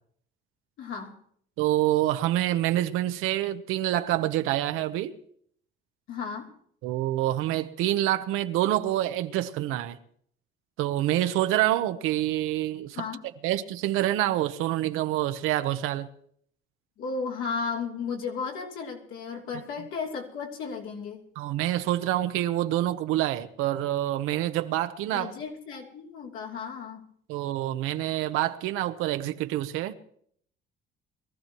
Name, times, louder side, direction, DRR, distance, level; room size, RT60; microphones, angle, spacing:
voice 1, 0.8-1.2 6.1-6.5 13.0-13.2 17.0-21.2 25.1-27.0, left 5 dB, 75° left, 3.1 m, -34 dB
voice 2, 1.6-5.2 6.8-10.0 10.8-13.1 13.4-16.1 21.4-25.3 27.3-29.9, right 14 dB, 90° right, 1.0 m, -27 dB
22.5 x 14.5 x 3.0 m
cardioid pair, 115°, 21 cm